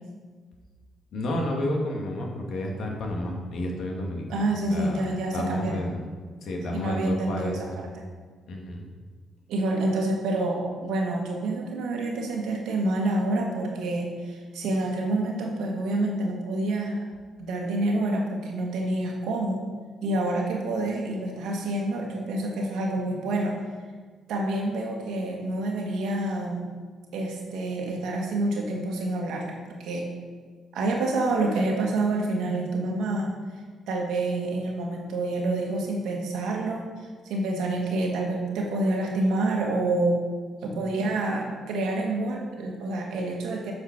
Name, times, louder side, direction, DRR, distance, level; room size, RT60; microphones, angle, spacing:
voice 1, 1.1-5.0 5.3-6.0 6.4-7.8 8.5-8.8, left 1 dB, 65° left, 1 dB, 1.7 m, -31 dB
voice 2, 4.3-5.8 6.7-8.0 9.5-17.0 17.4-19.6 20.0-23.6 24.3-26.7 27.1-29.5 29.8-30.1 30.7-33.3 33.9-36.8 37.2-40.2 40.6-43.7, right 2 dB, 85° right, 0 dB, 1.5 m, -27 dB
8.0 x 5.0 x 6.0 m, 1.5 s
cardioid pair, 90°, 0 cm